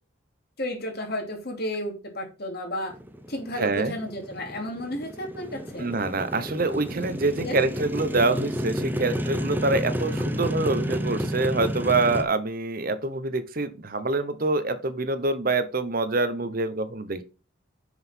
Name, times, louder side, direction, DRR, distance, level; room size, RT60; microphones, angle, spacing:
voice 1, 0.6-2.9 3.3-5.9 6.9-7.0 7.4-7.6, left 1 dB, 50° left, 2 dB, 2.8 m, -32 dB
Motorcycle, 2.9-12.2, equal, 10° right, 0.7 m, -31 dB
voice 2, 3.5-4.0 5.8-17.2, right 3 dB, 45° right, 12 dB, 1.0 m, -26 dB
6.9 x 6.4 x 4.4 m, 0.31 s
head